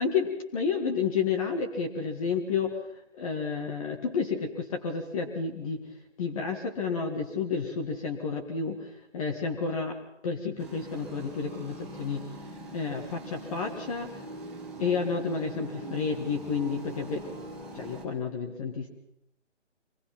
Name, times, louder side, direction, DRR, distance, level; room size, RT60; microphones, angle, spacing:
voice 1, 0.0-2.8 3.2-5.8 6.2-10.0 10.2-12.2 12.7-14.1 14.8-17.3 17.7-18.9, left 5 dB, 25° left, 2 dB, 1.8 m, -30 dB
sound 1, 10.6-18.1, right 1 dB, ahead, 2.1 m, -42 dB
24.0 x 18.5 x 5.9 m, 0.82 s
figure-of-eight pair, 155°, 38 cm